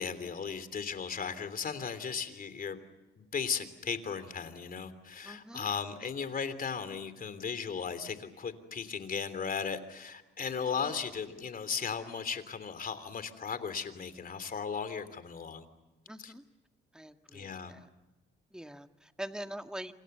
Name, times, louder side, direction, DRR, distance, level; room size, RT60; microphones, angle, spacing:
voice 1, 0.0-2.8 3.2-15.7 16.2-16.3 17.3-17.7, left 6 dB, 45° left, 12 dB, 3.3 m, -36 dB
voice 2, 5.2-5.7 10.9-11.0 16.1-16.4 16.9-17.9 18.5-19.9, right 1 dB, 5° right, 7 dB, 1.8 m, -44 dB
28.0 x 27.0 x 6.9 m, 1.1 s
cardioid pair, 90°, 20 cm